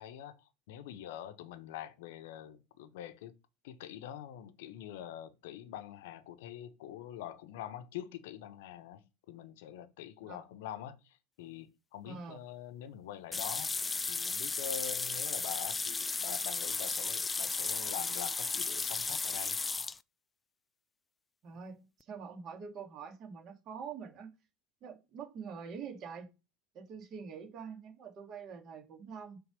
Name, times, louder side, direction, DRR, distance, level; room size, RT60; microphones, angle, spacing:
voice 1, 0.0-3.3 3.6-13.7 14.1-19.6, left 10 dB, 70° left, 0.7 m, -45 dB
voice 2, 12.1-12.4 21.4-24.3 24.8-26.3 26.7-29.4, right 6 dB, 45° right, 2.0 m, -45 dB
sound 1, 13.3-20.0, left 4 dB, 20° left, 0.3 m, -34 dB
5.9 x 3.6 x 5.1 m
hypercardioid pair, 80°, 0 cm